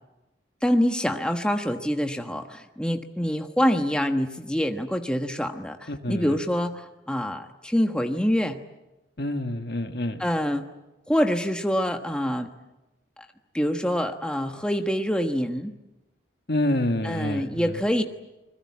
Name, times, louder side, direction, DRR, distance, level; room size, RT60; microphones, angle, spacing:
voice 1, 0.6-8.6 10.2-10.7 11.1-12.5 13.2-13.3 13.5-15.7 17.0-18.2, equal, 5° left, 4 dB, 1.2 m, -25 dB
voice 2, 5.9-6.3 9.2-10.2 16.5-17.5, left 1 dB, 55° left, 6 dB, 1.8 m, -27 dB
29.5 x 21.5 x 8.5 m, 1.0 s
head